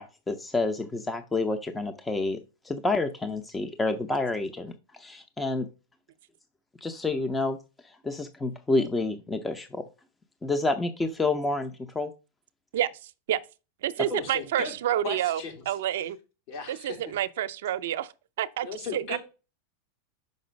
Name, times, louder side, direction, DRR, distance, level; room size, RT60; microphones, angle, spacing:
voice 1, 0.0-2.4 2.6-5.7 6.8-7.6 7.8-9.8 10.4-12.1, left 2 dB, 10° left, 0.6 m, -29 dB
voice 2, 12.7-13.4 13.8-15.4 15.7-16.2 16.7-18.1 18.4-19.2, right 11 dB, 75° right, 0.5 m, -29 dB
voice 3, 14.1-14.7 15.0-15.6 16.5-17.1 18.6-19.2, left 4 dB, 55° left, 2.8 m, -36 dB
5.9 x 5.3 x 5.1 m
supercardioid pair, 130°, 0 cm